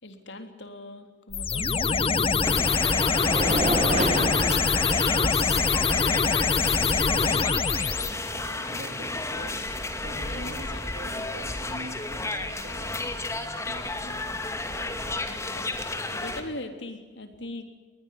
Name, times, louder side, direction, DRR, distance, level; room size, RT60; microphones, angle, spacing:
voice 1, 0.0-2.3 3.4-4.7 10.3-11.3 12.2-12.6 15.1-17.6, left 1 dB, 75° left, 7 dB, 3.5 m, -41 dB
sound 1, 1.3-8.1, left 5 dB, 30° left, 0.9 m, -24 dB
sound 2, 1.9-5.6, right 2 dB, 35° right, 1.4 m, -31 dB
sound 3, 2.4-16.4, left 2 dB, 15° left, 2.3 m, -32 dB
voice 2, 5.5-14.2, right 1 dB, 85° right, 4 dB, 2.5 m, -45 dB
22.0 x 20.0 x 9.5 m, 1.3 s
head